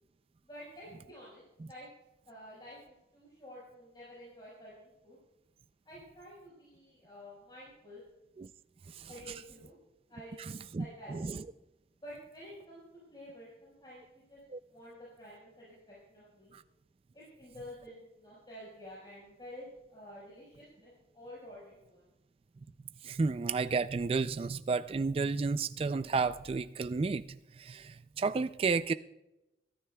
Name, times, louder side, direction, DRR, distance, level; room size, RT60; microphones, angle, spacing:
voice 1, 0.4-1.4 1.7-1.9 2.2-5.2 5.8-8.0 9.1-9.7 10.1-11.3 12.0-12.8 13.1-14.4 14.7-16.5 17.1-22.0, equal, 25° left, 4.9 m, -50 dB
voice 2, 10.4-11.4 14.5-14.6 16.5-16.6 23.0-28.9, right 4 dB, 35° right, 0.3 m, -32 dB
23.5 x 13.0 x 2.3 m
head